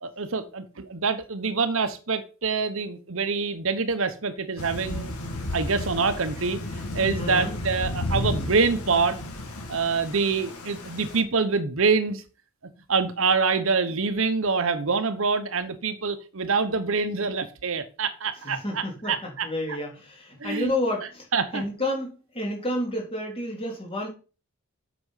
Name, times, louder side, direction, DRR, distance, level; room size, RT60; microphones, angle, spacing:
voice 1, 0.0-5.1 5.5-6.6 6.9-9.2 9.7-12.2 12.9-19.5 20.4-20.7 21.3-21.6, right 4 dB, 65° right, 10 dB, 1.0 m, -25 dB
Thunder / Rain, 4.6-11.2, left 1 dB, 85° left, 2.0 m, -33 dB
voice 2, 7.2-7.6 18.4-24.1, left 1 dB, 25° left, 0 dB, 3.3 m, -30 dB
8.1 x 6.1 x 5.6 m, 0.35 s
head